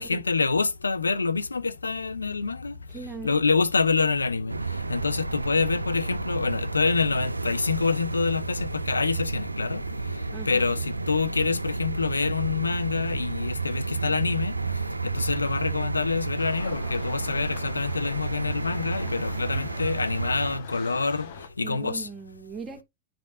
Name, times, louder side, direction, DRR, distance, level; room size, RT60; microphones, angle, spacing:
voice 1, 0.0-3.0 3.2-22.1, left 4 dB, 80° left, 0.6 m, -27 dB
voice 2, 2.9-3.4 10.3-10.7 21.6-22.8, right 5 dB, 25° right, 0.9 m, -39 dB
sound 1, 4.5-20.6, right 3 dB, 80° right, 0.4 m, -31 dB
sound 2, 16.4-21.5, left 7 dB, 55° left, 1.2 m, -43 dB
10.0 x 5.1 x 2.6 m
figure-of-eight pair, 90°, 0 cm